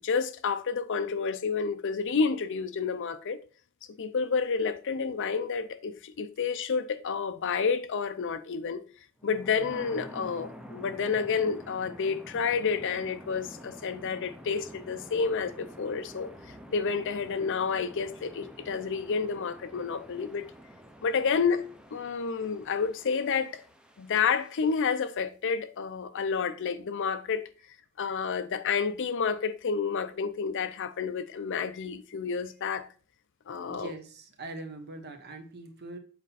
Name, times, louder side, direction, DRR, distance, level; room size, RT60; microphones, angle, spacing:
voice 1, 0.0-3.4 4.0-8.8 9.2-16.3 16.7-20.5 21.0-21.6 21.9-23.6 24.0-27.5 28.0-32.9 33.5-33.9, left 5 dB, 60° left, 0.5 m, -30 dB
sound 1, 9.2-25.1, equal, 5° right, 0.6 m, -48 dB
voice 2, 33.7-36.0, right 2 dB, 50° right, 1.1 m, -42 dB
7.5 x 4.3 x 4.0 m
head